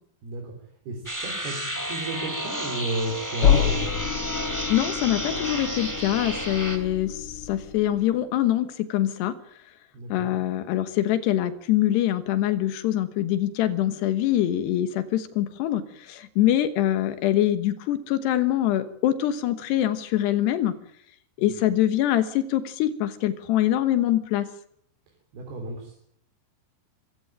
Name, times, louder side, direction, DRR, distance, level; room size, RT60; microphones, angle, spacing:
voice 1, 0.2-0.5 0.9-1.6 1.9-3.9 9.9-10.3 25.3-26.0, right 2 dB, 70° right, 2 dB, 5.5 m, -33 dB
sound 1, 1.1-6.8, equal, 5° right, 1.9 m, -31 dB
sound 2, 3.4-8.1, left 8 dB, 70° left, 1.4 m, -27 dB
voice 2, 4.7-9.3 10.1-20.7 21.4-24.5, left 12 dB, 90° left, 12 dB, 3.4 m, -24 dB
26.0 x 15.5 x 8.9 m, 0.70 s
omnidirectional pair, 4.7 m